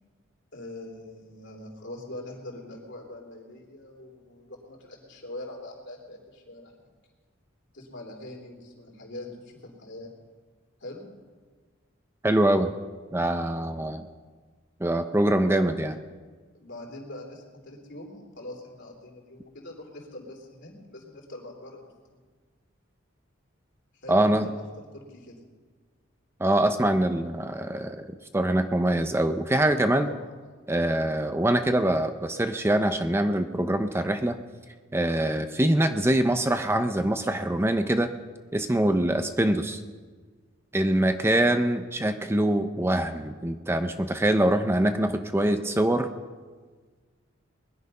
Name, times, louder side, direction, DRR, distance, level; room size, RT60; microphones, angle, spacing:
voice 1, 0.5-6.9 7.7-10.1 10.8-11.0 16.5-21.8 23.9-24.7 24.9-25.4 30.0-30.3 41.1-41.5, left 1 dB, 65° left, 0 dB, 3.4 m, -43 dB
voice 2, 12.2-12.7 13.1-14.0 14.8-16.0 24.1-24.5 26.4-28.1 28.3-30.1 30.7-34.4 34.9-38.1 38.5-39.8 40.7-46.1, right 1 dB, 15° right, 8 dB, 0.6 m, -24 dB
20.5 x 11.0 x 5.5 m, 1.5 s
head